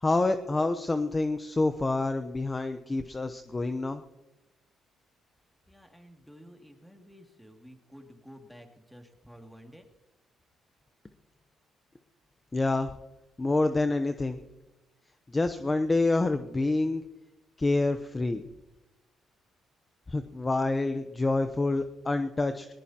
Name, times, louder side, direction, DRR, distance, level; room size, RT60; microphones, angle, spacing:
voice 1, 0.0-4.0 12.5-12.9 13.4-14.4 15.3-17.0 17.6-18.4 20.1-22.7, left 2 dB, 20° left, 8 dB, 0.8 m, -27 dB
voice 2, 5.7-9.9, equal, ahead, 3 dB, 2.4 m, -51 dB
19.5 x 19.5 x 2.9 m, 1.0 s
cardioid pair, 90°, 0 cm